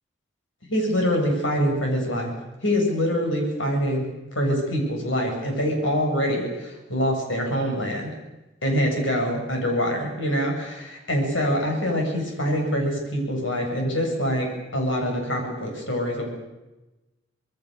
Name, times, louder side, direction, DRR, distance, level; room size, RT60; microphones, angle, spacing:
voice 1, 0.7-2.3 2.6-4.0 4.4-8.1 8.6-16.3, equal, 85° left, 1 dB, 7.4 m, -25 dB
26.5 x 21.0 x 6.7 m, 1.0 s
head